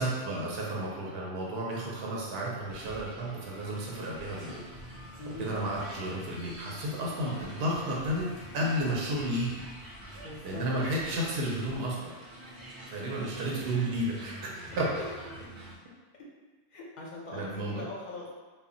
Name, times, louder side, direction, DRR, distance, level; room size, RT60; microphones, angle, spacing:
voice 1, 0.0-4.6 5.4-8.3 8.5-9.6 10.4-12.1 12.9-14.3 14.8-14.9 17.3-17.8, right 1 dB, 70° right, -4 dB, 0.8 m, -32 dB
sound 1, 2.7-15.7, right 1 dB, 30° right, 0.4 m, -46 dB
voice 2, 5.2-5.7 10.2-10.6 13.0-13.5 15.0-15.1 16.7-18.3, left 1 dB, 50° left, -4 dB, 0.6 m, -41 dB
2.1 x 2.1 x 3.7 m, 1.3 s
omnidirectional pair, 1.2 m